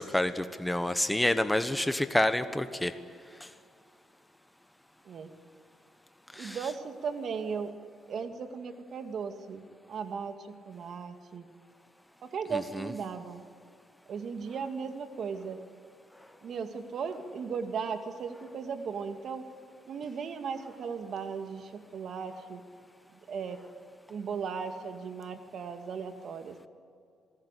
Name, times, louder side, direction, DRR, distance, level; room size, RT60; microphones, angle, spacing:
voice 1, 0.0-2.9 6.3-6.6, left 1 dB, 10° left, 10 dB, 1.2 m, -28 dB
voice 2, 6.4-7.7 8.1-11.5 12.2-13.4 14.1-15.6 16.4-19.5 19.9-22.6 23.3-23.7 24.1-26.7, right 6 dB, 60° right, 7 dB, 2.2 m, -37 dB
27.0 x 19.5 x 8.4 m, 2.4 s
cardioid pair, 90°, 0 cm